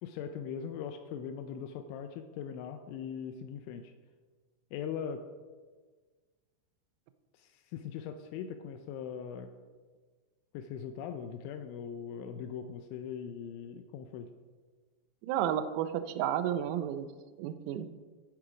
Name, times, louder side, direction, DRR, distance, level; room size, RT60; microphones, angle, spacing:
voice 1, 0.0-3.9 4.7-5.2 7.3-9.5 10.5-14.3, left 7 dB, 85° left, 7 dB, 2.7 m, -40 dB
voice 2, 15.2-17.1 17.4-17.9, right 10 dB, 90° right, 11 dB, 3.4 m, -32 dB
11.0 x 7.7 x 5.0 m, 1.5 s
omnidirectional pair, 5.9 m